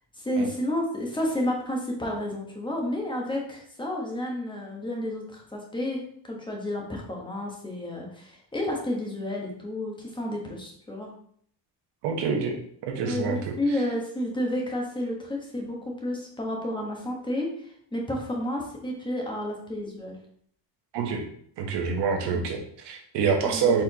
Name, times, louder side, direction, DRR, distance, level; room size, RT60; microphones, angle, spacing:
voice 1, 0.1-11.1 13.0-20.2 22.3-22.4 23.4-23.8, left 1 dB, 10° left, -1 dB, 1.1 m, -31 dB
voice 2, 12.0-12.6 12.9-13.5 20.9-21.2 21.6-23.8, right 6 dB, 65° right, 3 dB, 1.0 m, -26 dB
4.4 x 3.7 x 2.9 m, 0.63 s
cardioid pair, 120°, 45 cm